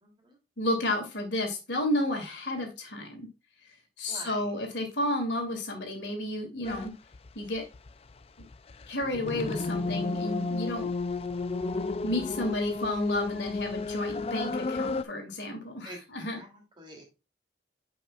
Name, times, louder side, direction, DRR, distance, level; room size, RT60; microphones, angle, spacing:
voice 1, 0.0-0.4 4.1-4.5 15.8-16.0 16.3-17.0, right 1 dB, 25° right, 0 dB, 2.8 m, -47 dB
voice 2, 0.6-3.3 4.0-6.9 7.3-7.6 8.4-8.5 8.9-10.9 12.0-16.4, left 1 dB, 85° left, 3 dB, 2.5 m, -31 dB
sound 1, 6.6-6.9 7.1-15.0, left 3 dB, 35° left, 0.4 m, -32 dB
9.8 x 5.5 x 2.4 m, 0.28 s
head